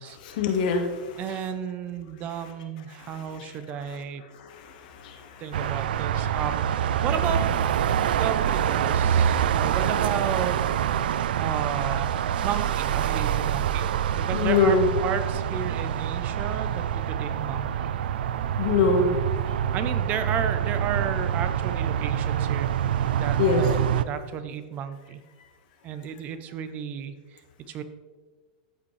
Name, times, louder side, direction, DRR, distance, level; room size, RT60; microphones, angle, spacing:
voice 1, 0.2-1.2 3.0-3.5 3.7-3.8 4.3-5.5 6.2-6.3 14.3-14.9 18.6-19.2 23.4-23.6, left 4 dB, 60° left, 4 dB, 1.5 m, -24 dB
voice 2, 1.2-4.2 5.4-7.5 8.2-10.6 11.4-12.1 12.4-13.9 14.1-17.9 19.7-22.7 23.1-25.2 25.8-27.1 27.7-27.8, right 8 dB, 30° right, 10 dB, 0.5 m, -33 dB
sound 1, 5.5-24.0, right 9 dB, 80° right, 0.4 m, -26 dB
14.0 x 5.1 x 3.2 m, 1.4 s
supercardioid pair, 150°, 5 cm